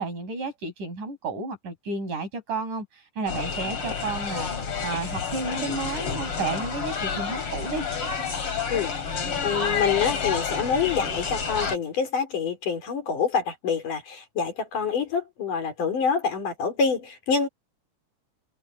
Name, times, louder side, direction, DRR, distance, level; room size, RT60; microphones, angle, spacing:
voice 1, 0.0-7.9, right 3 dB, 80° right, 8.3 m, -32 dB
sound 1, 3.3-11.8, left 6 dB, 45° left, 3.9 m, -29 dB
voice 2, 9.4-17.5, left 6 dB, 85° left, 6.2 m, -26 dB
omnidirectional pair, 3.6 m